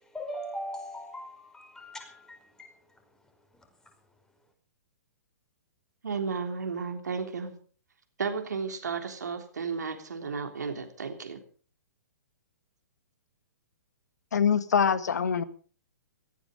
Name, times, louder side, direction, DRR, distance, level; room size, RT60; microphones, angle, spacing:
voice 1, 0.1-2.7, equal, 5° left, 5.1 m, -39 dB
voice 2, 6.0-7.5 8.2-11.4, right 5 dB, 80° right, 3.3 m, -33 dB
voice 3, 14.3-15.4, left 7 dB, 75° left, 1.6 m, -24 dB
18.5 x 15.0 x 5.1 m
hypercardioid pair, 130°, 9 cm